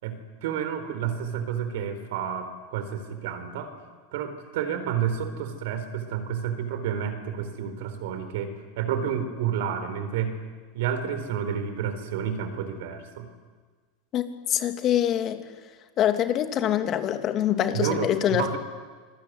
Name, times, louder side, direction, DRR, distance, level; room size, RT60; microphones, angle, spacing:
voice 1, 0.0-3.7 4.1-10.4 10.7-13.3 17.7-18.6, right 8 dB, 70° right, 9 dB, 4.1 m, -30 dB
voice 2, 14.5-15.4 16.0-18.6, left 10 dB, 40° left, 8 dB, 2.7 m, -24 dB
26.0 x 21.0 x 9.5 m, 1.5 s
hypercardioid pair, 90°, 0 cm